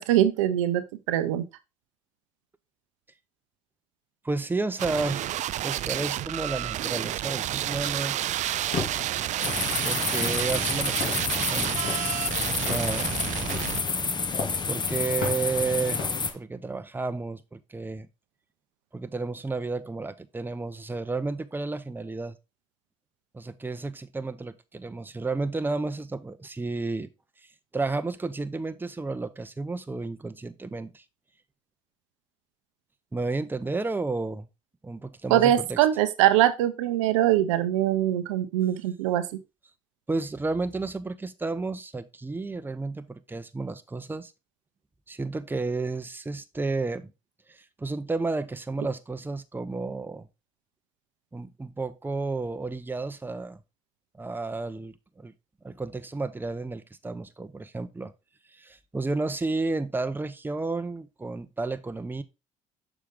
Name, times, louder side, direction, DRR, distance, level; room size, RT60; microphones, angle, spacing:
voice 1, 0.0-1.4 35.3-39.3, right 12 dB, 90° right, 0.6 m, -23 dB
voice 2, 4.2-5.3 5.6-8.2 9.8-11.9 12.5-13.2 14.7-16.0 16.3-18.1 18.9-22.4 23.3-27.1 27.7-31.0 33.1-34.5 34.8-35.8 40.1-44.3 45.1-47.1 47.5-50.3 51.3-53.6 54.2-55.3 55.6-58.1 58.5-62.2, right 3 dB, 10° right, 0.7 m, -32 dB
sound 1, 4.8-13.8, right 13 dB, 50° right, 0.4 m, -30 dB
sound 2, 8.4-16.4, left 4 dB, 55° left, 2.7 m, -38 dB
sound 3, 9.4-16.3, left 4 dB, 30° left, 0.9 m, -29 dB
6.6 x 4.9 x 3.7 m
hypercardioid pair, 70°, 16 cm